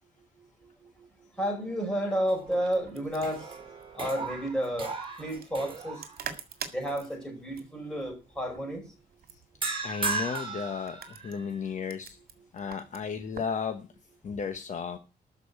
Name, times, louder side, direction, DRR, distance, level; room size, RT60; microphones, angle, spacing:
voice 1, 0.4-3.6 3.9-4.9 5.2-6.0 6.7-8.8 12.3-12.4, equal, 5° left, 1 dB, 5.1 m, -32 dB
sound 1, 2.1-2.8 3.1-6.4 6.9-7.1 9.6-11.6, right 3 dB, 30° right, 4.1 m, -36 dB
sound 2, 2.5-13.6, right 7 dB, 65° right, 2.0 m, -47 dB
voice 2, 9.8-12.2 12.5-13.9 14.2-15.0, left 6 dB, 45° left, 7 dB, 1.1 m, -34 dB
13.0 x 5.3 x 8.2 m, 0.31 s
wide cardioid pair, 175°, 17 cm